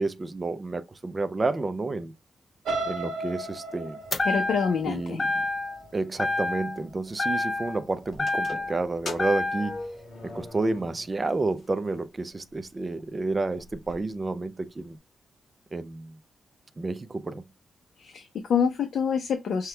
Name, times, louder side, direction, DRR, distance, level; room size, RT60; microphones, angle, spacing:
voice 1, 0.0-2.1 2.9-4.0 4.8-5.4 5.9-9.8 10.2-15.0 15.7-16.2 16.8-17.4, right 3 dB, 20° right, 0.4 m, -30 dB
sound 1, 2.6-6.6 7.1-7.4 7.7-7.8, right 2 dB, 80° right, 1.1 m, -35 dB
sound 2, 4.1-4.9 5.2-5.9 6.2-6.9 7.2-8.8 9.2-9.8, left 2 dB, 25° left, 0.6 m, -28 dB
voice 2, 4.2-5.2 18.0-19.7, left 6 dB, 65° left, 0.7 m, -26 dB
sound 3, 8.1-11.3 11.6-11.7 12.5-12.6 13.0-13.1 13.3-13.9, left 2 dB, 45° left, 1.6 m, -40 dB
5.8 x 2.3 x 3.2 m
wide cardioid pair, 170°, 0 cm